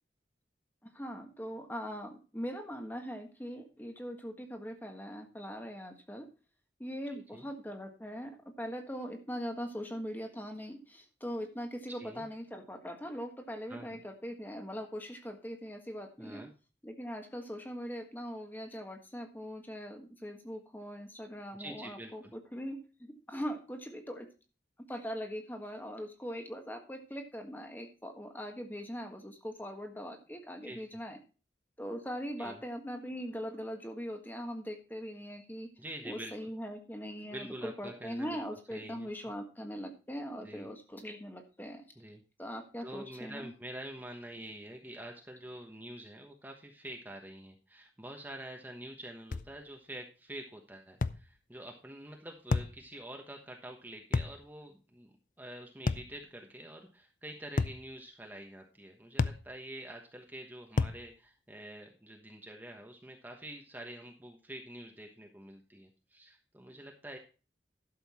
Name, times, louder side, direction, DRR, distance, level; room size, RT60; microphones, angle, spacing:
voice 1, 0.8-6.3 6.8-16.4 16.8-24.3 24.9-31.2 31.8-35.7 36.0-41.9 42.4-43.5, equal, 10° left, 4 dB, 1.5 m, -41 dB
voice 2, 13.7-14.0 16.2-16.5 21.5-22.3 30.6-31.0 32.4-32.6 35.8-36.3 37.3-38.4 38.7-39.1 40.4-40.7 42.0-42.2 42.8-67.2, right 1 dB, 10° right, 2 dB, 1.2 m, -46 dB
sound 1, 49.3-49.5 51.0-51.2 52.5-52.8 54.1-54.4 55.9-56.1 57.6-57.8 59.2-59.4 60.8-61.0, left 3 dB, 45° left, 0.5 m, -30 dB
12.0 x 6.9 x 4.2 m, 0.34 s
head